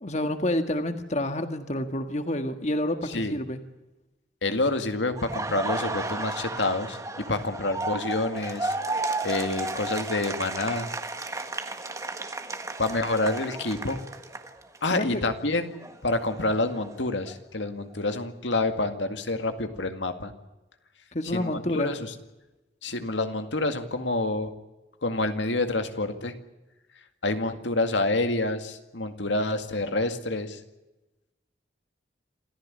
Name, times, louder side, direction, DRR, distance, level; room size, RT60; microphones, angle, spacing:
voice 1, 0.0-3.6 14.9-15.2 21.1-21.9, left 1 dB, 40° left, 8 dB, 1.7 m, -28 dB
voice 2, 3.1-3.4 4.4-8.8 9.2-10.9 12.8-14.0 14.8-15.7 16.0-20.3 21.2-22.1 22.8-24.5 25.0-26.3 27.2-30.6, left 2 dB, 80° left, 7 dB, 2.1 m, -28 dB
Laughter, 5.2-15.0 15.3-17.3, right 2 dB, 15° right, 1.5 m, -33 dB
27.5 x 14.5 x 9.9 m, 1.1 s
head